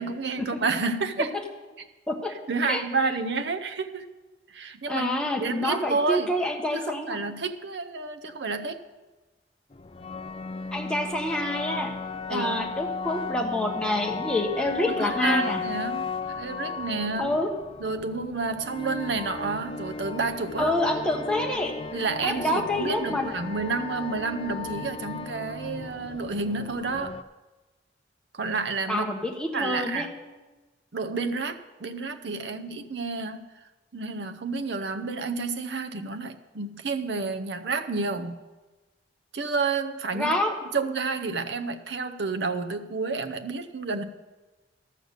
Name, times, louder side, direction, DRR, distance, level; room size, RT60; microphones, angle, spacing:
voice 1, 0.0-1.3 2.5-4.1 4.5-5.1 5.4-6.3 6.7-8.8 12.3-12.7 14.9-17.4 17.8-20.7 21.9-27.1 28.3-29.1 29.5-30.1 30.9-33.4 33.9-38.4 39.3-40.4 40.7-44.0, right 4 dB, 65° right, 8 dB, 0.7 m, -30 dB
voice 2, 4.9-7.2 10.7-11.9 12.3-15.6 17.2-17.5 20.6-21.7 22.2-23.3 28.9-30.1 40.1-40.5, left 1 dB, 5° left, 0 dB, 1.2 m, -27 dB
sound 1, 9.7-27.2, left 4 dB, 30° left, 0.4 m, -35 dB
13.5 x 6.5 x 6.5 m, 1.2 s
head